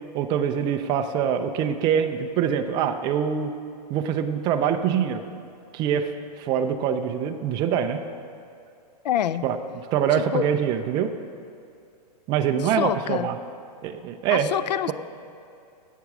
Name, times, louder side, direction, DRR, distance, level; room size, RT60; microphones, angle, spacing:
voice 1, 0.1-3.5 3.9-5.2 5.7-6.1 6.4-8.0 9.4-9.6 9.9-11.1 12.3-13.4 13.8-14.5, right 8 dB, 20° right, 7 dB, 0.4 m, -24 dB
voice 2, 9.0-9.5 10.1-10.5 12.5-13.3 14.3-14.9, left 11 dB, 85° left, 15 dB, 0.4 m, -26 dB
8.3 x 8.1 x 6.0 m, 2.4 s
hypercardioid pair, 150°, 21 cm